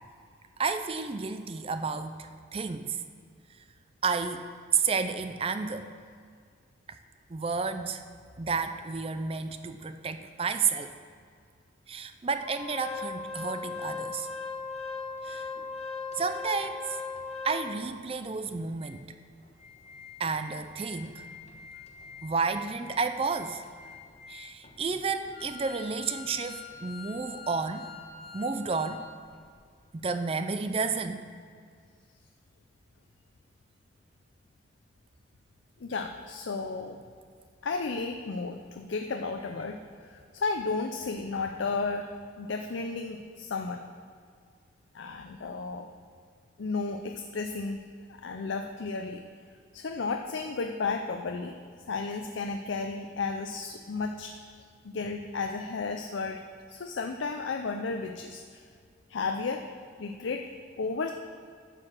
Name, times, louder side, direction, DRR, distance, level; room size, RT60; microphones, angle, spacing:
voice 1, 0.6-3.0 4.0-4.4 4.7-5.9 7.3-8.0 8.4-10.9 11.9-14.3 15.2-15.4 16.2-17.0 17.4-19.0 20.2-21.2 22.2-23.6 24.3-27.9 28.3-29.1 30.0-31.3, right 5 dB, 30° right, 9 dB, 0.4 m, -31 dB
Organ, 12.4-17.9 18.5-18.6 18.8-19.0 19.4-29.0 29.3-29.5, left 4 dB, 35° left, 1.1 m, -41 dB
voice 2, 35.8-37.0 37.6-43.8 44.9-45.9 46.6-47.9 48.2-49.2 49.7-51.5 51.9-54.4 54.8-56.4 56.7-58.4 59.1-59.7 60.0-60.5 60.8-61.1, left 4 dB, 75° left, 4 dB, 0.5 m, -33 dB
11.5 x 4.9 x 7.5 m, 2.1 s
head